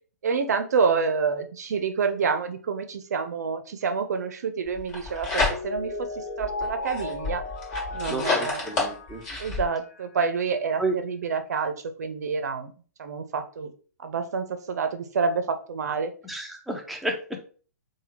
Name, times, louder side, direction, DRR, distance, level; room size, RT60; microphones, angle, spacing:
voice 1, 0.2-7.4 7.9-9.0 9.4-12.7 13.0-13.7 14.0-16.1, right 5 dB, 65° right, 8 dB, 0.5 m, -28 dB
sound 1, 4.8-6.0 6.4-9.6, left 3 dB, 35° left, 1.3 m, -29 dB
Mallet percussion, 5.2-10.2, left 2 dB, 50° left, 0.7 m, -36 dB
voice 2, 8.1-9.2 10.8-10.9 16.2-17.4, right 2 dB, ahead, 1 dB, 0.5 m, -31 dB
3.3 x 2.2 x 2.9 m, 0.41 s
figure-of-eight pair, 120°, 9 cm